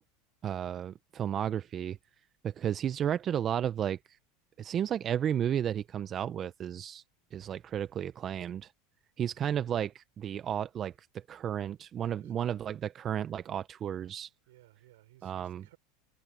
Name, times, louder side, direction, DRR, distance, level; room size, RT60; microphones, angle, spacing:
voice 1, 0.4-2.0 2.4-4.2 4.6-7.0 7.3-8.7 9.2-14.3 15.2-15.6, right 9 dB, 35° right, 0.9 m, -33 dB
voice 2, 12.1-12.5 14.5-15.8, right 17 dB, 75° right, 5.9 m, -59 dB
hypercardioid pair, 100°, 0 cm